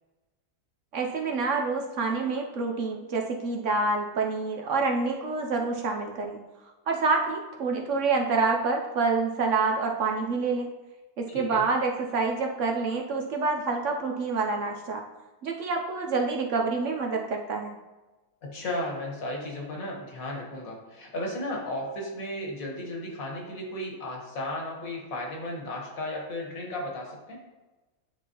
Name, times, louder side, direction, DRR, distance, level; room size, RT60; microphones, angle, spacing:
voice 1, 0.9-6.4 6.9-10.7 11.2-15.0 15.4-17.8, right 4 dB, 65° right, 2 dB, 0.8 m, -27 dB
voice 2, 11.3-11.6 18.4-27.4, left 1 dB, 65° left, 0 dB, 1.7 m, -34 dB
9.9 x 3.5 x 2.9 m, 1.2 s
omnidirectional pair, 1.6 m